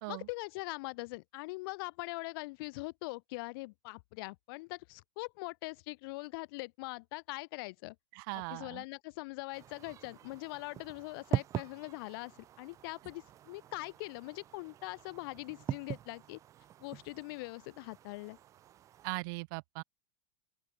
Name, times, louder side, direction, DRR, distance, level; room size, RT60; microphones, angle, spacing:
voice 1, 0.1-8.0 8.3-16.4 16.8-18.4, left 24 dB, 50° left, 2.0 m, -42 dB
voice 2, 8.1-8.8 19.0-19.8, right 29 dB, 45° right, 1.0 m, -39 dB
sound 1, 9.5-19.2, right 11 dB, 20° right, 0.6 m, -43 dB
open air
supercardioid pair, 160°, 15 cm